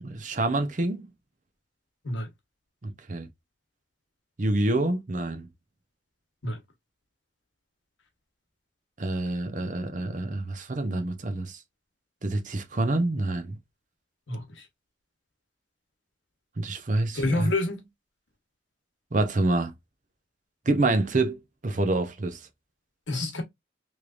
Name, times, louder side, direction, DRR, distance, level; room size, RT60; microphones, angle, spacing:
voice 1, 0.0-1.0 2.8-3.3 4.4-5.5 9.0-11.6 12.2-13.6 16.6-17.5 19.1-19.7 20.7-22.4, right 2 dB, 40° right, 0.7 m, -27 dB
voice 2, 14.3-14.6 17.1-17.9 23.1-23.4, left 2 dB, 80° left, 1.2 m, -28 dB
3.2 x 3.2 x 2.5 m
head